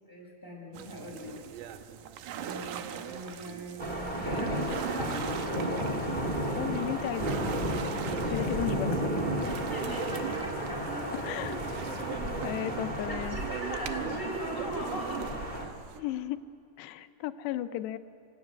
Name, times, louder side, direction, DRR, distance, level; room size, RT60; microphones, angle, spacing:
voice 1, 0.1-1.3 2.3-5.4 7.9-8.4 9.7-11.2 11.6-11.7 13.1-15.5 17.5-17.6, right 1 dB, 5° left, -2 dB, 5.5 m, -39 dB
sound 1, 0.7-16.0, right 10 dB, 80° right, 1.9 m, -41 dB
sound 2, 3.8-15.6, right 1 dB, 40° right, 0.6 m, -33 dB
voice 2, 6.5-7.9 8.3-9.1 11.1-11.6 12.4-13.4 16.0-16.4 16.8-18.0, left 13 dB, 85° left, 11 dB, 2.9 m, -35 dB
27.5 x 16.5 x 9.5 m, 2.3 s
omnidirectional pair, 4.9 m